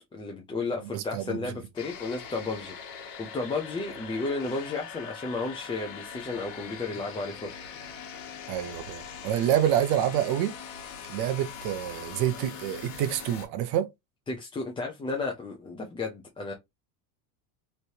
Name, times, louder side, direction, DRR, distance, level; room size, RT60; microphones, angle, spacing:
voice 1, 0.1-7.5 14.3-16.5, left 3 dB, 15° left, 0.5 m, -33 dB
voice 2, 0.9-1.4 8.5-10.5 11.1-13.9, right 11 dB, 65° right, 0.8 m, -27 dB
sound 1, 1.8-13.5, left 6 dB, 50° left, 1.2 m, -42 dB
3.2 x 2.7 x 2.7 m
cardioid pair, 140°, 41 cm